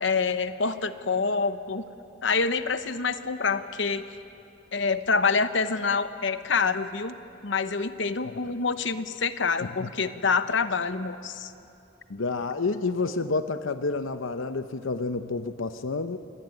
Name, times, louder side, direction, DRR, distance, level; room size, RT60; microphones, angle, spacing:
voice 1, 0.0-1.8 2.2-4.0 4.7-7.1 7.4-11.5, left 4 dB, 70° left, 11 dB, 1.0 m, -26 dB
voice 2, 12.1-16.2, left 3 dB, 90° left, 10 dB, 0.8 m, -29 dB
27.5 x 22.0 x 9.2 m, 2.8 s
head